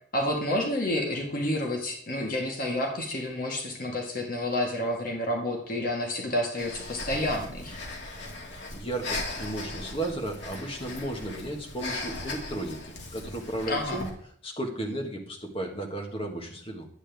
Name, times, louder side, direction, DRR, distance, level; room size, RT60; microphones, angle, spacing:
voice 1, 0.1-7.7 13.7-14.0, left 1 dB, 50° left, 0 dB, 1.7 m, -29 dB
Breathing, 6.6-14.1, left 2 dB, 70° left, 2.1 m, -38 dB
voice 2, 8.7-14.1 14.4-16.9, right 1 dB, 30° left, 1 dB, 1.6 m, -34 dB
9.8 x 8.7 x 3.5 m, 0.63 s
head